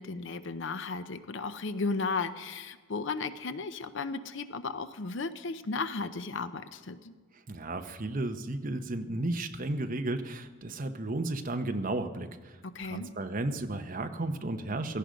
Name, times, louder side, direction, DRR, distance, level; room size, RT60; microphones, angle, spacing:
voice 1, 0.0-7.1 12.7-13.1, left 4 dB, 60° left, 12 dB, 0.7 m, -35 dB
voice 2, 7.5-12.3 12.8-15.0, right 2 dB, 40° right, 7 dB, 0.9 m, -33 dB
17.0 x 14.5 x 5.1 m, 1.4 s
head